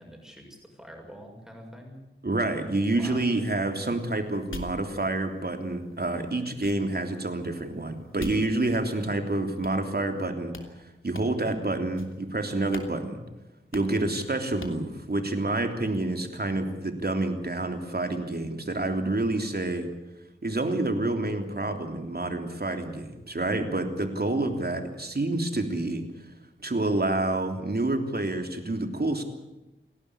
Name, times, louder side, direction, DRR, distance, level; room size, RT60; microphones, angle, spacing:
voice 1, 0.0-2.0 2.9-3.2, equal, ahead, 1 dB, 6.6 m, -46 dB
voice 2, 2.2-13.2 13.7-19.9 20.4-26.0 26.6-29.2, right 2 dB, 50° right, 6 dB, 3.3 m, -28 dB
sound 1, 3.8-9.1 9.6-10.2 10.5-10.7 11.1-11.6 12.0-12.3 12.7-12.9 13.2-13.3 13.7-14.0 14.6-14.9, left 3 dB, 75° left, 3.0 m, -45 dB
29.0 x 12.0 x 9.8 m, 1.0 s
wide cardioid pair, 70°, 21 cm